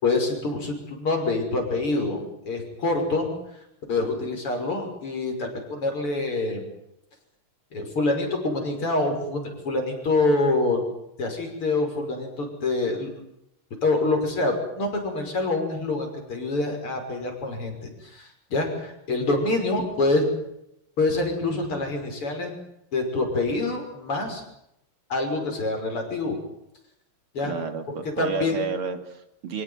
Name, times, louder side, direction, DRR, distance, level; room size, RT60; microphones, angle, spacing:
voice 1, 0.0-3.3 3.9-6.6 7.7-10.8 11.2-13.1 13.8-17.7 18.0-20.2 21.0-22.6 22.9-24.4 25.1-26.4 27.3-27.5 28.2-28.6, left 2 dB, 90° left, 3 dB, 6.7 m, -26 dB
voice 2, 27.4-29.6, right 5 dB, 80° right, 8 dB, 3.4 m, -31 dB
26.5 x 17.0 x 9.6 m, 0.81 s
omnidirectional pair, 2.4 m